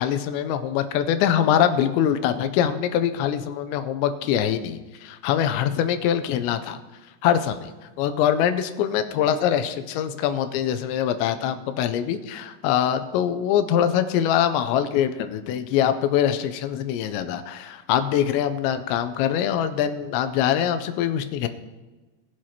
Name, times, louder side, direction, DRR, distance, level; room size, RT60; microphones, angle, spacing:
voice 1, 0.0-6.8 7.2-7.7 8.0-21.5, left 9 dB, 85° left, 10 dB, 2.8 m, -23 dB
20.5 x 7.6 x 2.9 m, 1.2 s
omnidirectional pair, 5.3 m